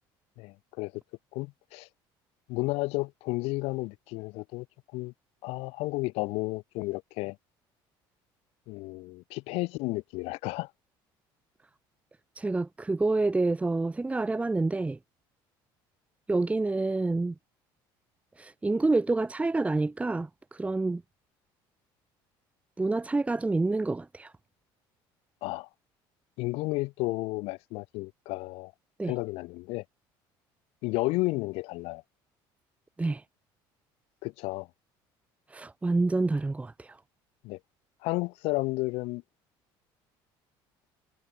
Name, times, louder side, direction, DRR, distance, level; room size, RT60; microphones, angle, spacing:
voice 1, 0.4-1.0 1.3-1.9 2.5-4.7 4.9-5.1 5.4-7.4 8.7-10.7 25.4-25.7 26.4-28.7 29.1-29.8 30.8-32.0 34.2-34.7 37.4-37.6 38.0-39.2, left 23 dB, 75° left, 2.5 m, -32 dB
voice 2, 12.4-15.0 16.3-17.3 18.4-21.0 22.8-24.3 29.0-29.1 33.0-33.2 35.5-37.0, right 3 dB, 15° right, 1.4 m, -28 dB
supercardioid pair, 105°, 10 cm